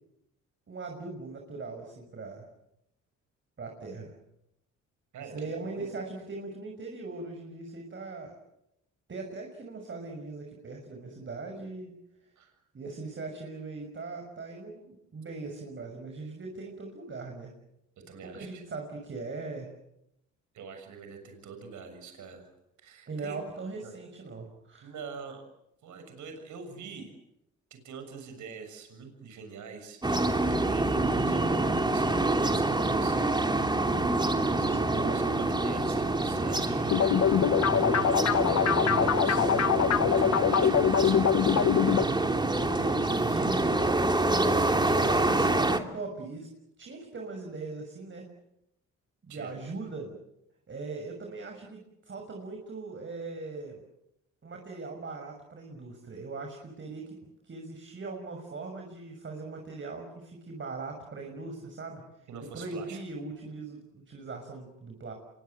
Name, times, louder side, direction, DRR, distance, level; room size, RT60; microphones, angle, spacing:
voice 1, 0.7-2.4 3.6-4.1 5.2-8.4 9.1-11.9 12.7-17.5 18.2-19.7 23.1-24.9 34.6-35.3 42.6-44.0 44.8-46.5 46.8-48.3 49.2-50.1 50.7-53.8 54.4-57.2 57.4-62.0 62.5-65.1, right 3 dB, 40° right, 3 dB, 6.3 m, -40 dB
voice 2, 5.1-5.9 12.4-12.5 18.1-18.6 20.5-22.5 22.8-23.4 23.8-23.9 24.8-25.4 25.8-27.1 27.7-33.7 34.6-41.6 44.7-45.3 49.3-49.5 62.3-63.0, right 5 dB, 75° right, 6 dB, 6.9 m, -45 dB
sound 1, 30.0-45.8, right 2 dB, 15° right, 2.8 m, -26 dB
sound 2, 36.9-42.0, left 9 dB, 60° left, 1.3 m, -24 dB
27.5 x 23.0 x 8.0 m, 0.83 s
cardioid pair, 90°, 30 cm